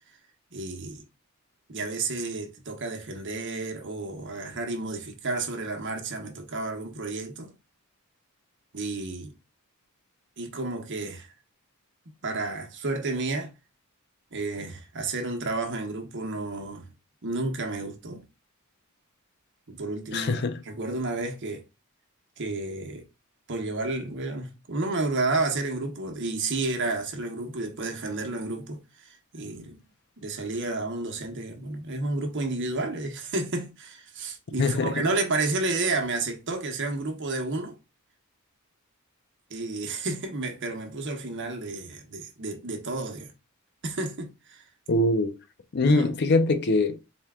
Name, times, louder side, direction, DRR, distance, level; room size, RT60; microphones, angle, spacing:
voice 1, 0.5-1.0 1.7-7.5 8.7-9.3 10.4-11.3 12.2-13.5 14.3-16.9 17.2-18.2 19.7-21.6 22.4-23.1 23.5-29.8 30.2-37.7 39.5-43.3 43.8-44.6 45.8-46.1, right 3 dB, 55° right, 0.8 m, -31 dB
voice 2, 20.1-20.6 34.6-34.9 44.9-45.4 45.7-47.0, left 2 dB, 50° left, 0.5 m, -23 dB
4.3 x 2.2 x 3.5 m
head